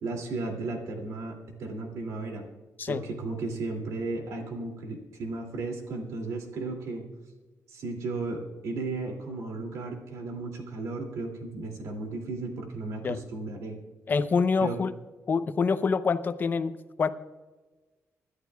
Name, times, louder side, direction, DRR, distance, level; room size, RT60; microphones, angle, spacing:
voice 1, 0.0-2.5 2.9-7.0 7.7-13.8 14.6-14.8, right 3 dB, 85° right, 2 dB, 2.6 m, -35 dB
voice 2, 14.1-14.9 15.3-17.1, left 5 dB, 40° left, 11 dB, 0.6 m, -26 dB
26.0 x 11.5 x 2.3 m, 1.2 s
cardioid pair, 125°, 5 cm